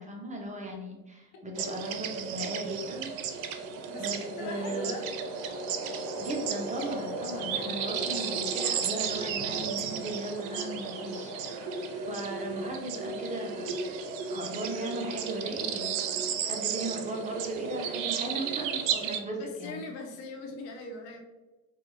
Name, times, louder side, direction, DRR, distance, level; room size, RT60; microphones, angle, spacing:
voice 1, 0.0-3.1 4.0-5.0 6.2-13.9 14.3-16.2 16.4-19.8, right 1 dB, 15° right, 1 dB, 0.7 m, -37 dB
sound 1, 1.6-19.2, right 7 dB, 65° right, 0.6 m, -34 dB
voice 2, 3.9-5.1 19.4-21.2, left 2 dB, 55° left, 2 dB, 1.0 m, -40 dB
sound 2, 3.9-12.2, left 4 dB, 30° left, 0.5 m, -43 dB
4.2 x 2.3 x 3.2 m, 1.1 s
hypercardioid pair, 85°, 43 cm